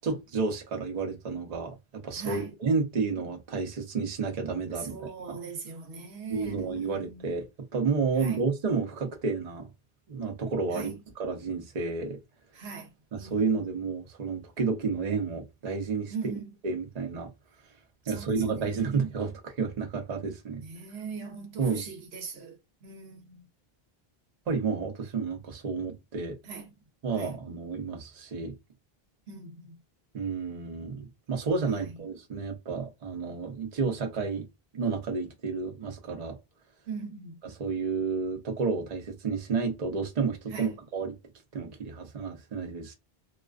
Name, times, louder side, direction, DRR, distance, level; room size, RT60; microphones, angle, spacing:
voice 1, 0.0-1.8 2.0-5.4 6.3-7.5 7.7-9.7 10.1-12.2 13.1-16.3 16.6-17.3 18.1-20.6 21.6-21.8 24.5-26.3 27.0-28.5 30.1-34.5 34.7-36.4 37.4-41.2 41.5-42.9, right 4 dB, 45° right, 0.7 m, -31 dB
voice 2, 2.2-2.5 4.7-7.3 8.2-8.4 10.7-10.9 12.5-12.9 13.2-13.4 16.1-16.5 18.1-19.1 20.6-22.6 22.8-23.4 26.4-26.6 27.1-27.3 29.3-29.7 36.9-37.4 40.5-40.8, right 5 dB, 85° right, 1.0 m, -40 dB
2.3 x 2.3 x 2.3 m
omnidirectional pair, 1.0 m